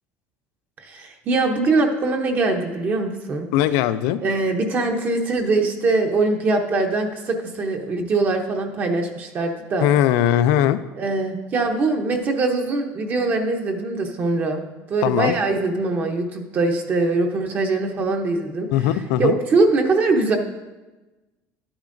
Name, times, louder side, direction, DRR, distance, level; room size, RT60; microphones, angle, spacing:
voice 1, 0.8-3.5 4.2-9.9 11.0-14.6 14.9-20.4, right 3 dB, 30° right, 3 dB, 0.7 m, -22 dB
voice 2, 3.5-4.2 9.8-10.8 15.0-15.3 18.7-19.4, left 11 dB, 80° left, 14 dB, 0.4 m, -19 dB
11.5 x 8.7 x 2.6 m, 1.1 s
cardioid pair, 155°, 6 cm